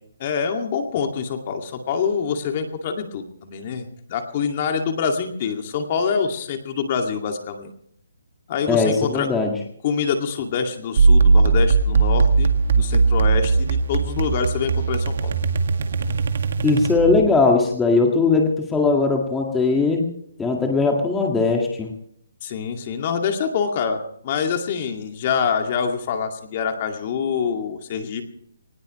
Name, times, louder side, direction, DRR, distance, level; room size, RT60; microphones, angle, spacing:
voice 1, 0.2-7.7 8.5-9.3 9.8-12.5 12.8-15.3 22.4-28.2, left 6 dB, 35° left, 4 dB, 2.3 m, -25 dB
voice 2, 8.7-9.6 16.6-20.0 20.4-21.9, left 4 dB, 5° left, 0 dB, 1.9 m, -19 dB
sound 1, 11.0-17.3, right 4 dB, 55° right, 2.0 m, -19 dB
22.0 x 19.5 x 3.2 m, 0.67 s
hypercardioid pair, 165°, 0 cm